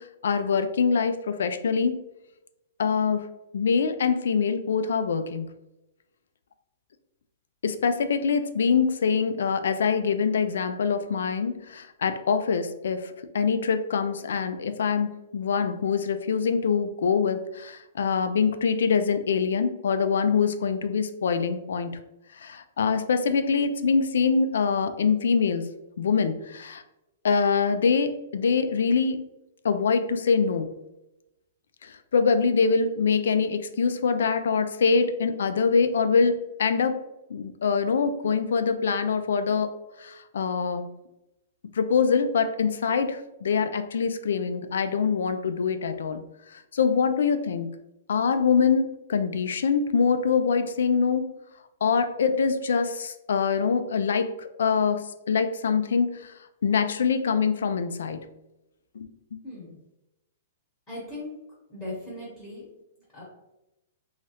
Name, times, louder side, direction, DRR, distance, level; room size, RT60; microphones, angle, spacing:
voice 1, 0.0-2.0 2.8-3.3 3.5-5.5 7.6-22.0 22.3-25.7 26.0-26.8 27.2-29.2 29.6-30.7 31.8-37.0 37.3-40.9 41.7-46.2 46.5-47.7 48.1-51.3 51.8-56.3 56.6-58.2 58.9-59.4, left 5 dB, 85° left, 10 dB, 0.3 m, -24 dB
voice 2, 59.4-59.8 60.9-61.3 61.7-62.6 63.1-63.2, left 1 dB, 10° left, -10 dB, 0.9 m, -38 dB
3.1 x 2.3 x 2.8 m, 0.92 s
hypercardioid pair, 175°, 0 cm